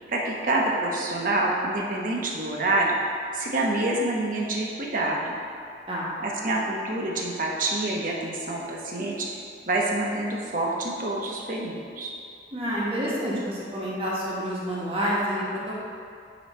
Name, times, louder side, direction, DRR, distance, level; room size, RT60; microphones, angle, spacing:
voice 1, 0.1-3.0 3.3-5.4 6.2-9.3 9.7-12.1, right 2 dB, 45° right, -2 dB, 0.9 m, -27 dB
voice 2, 12.5-15.8, equal, 30° right, -6 dB, 1.2 m, -28 dB
9.1 x 3.2 x 4.2 m, 2.4 s
head